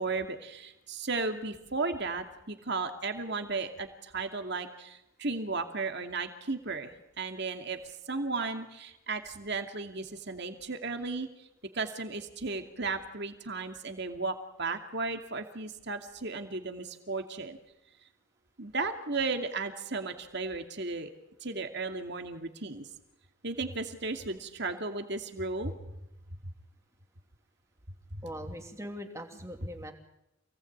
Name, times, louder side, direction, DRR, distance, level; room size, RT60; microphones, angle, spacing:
voice 1, 0.0-7.8 8.1-11.3 11.7-17.6 18.6-21.1 21.4-22.9 23.4-25.7 28.1-28.2, right 3 dB, 50° right, 6 dB, 2.5 m, -35 dB
voice 2, 28.2-29.9, equal, 15° right, 4 dB, 2.9 m, -41 dB
28.0 x 19.0 x 8.8 m, 0.89 s
head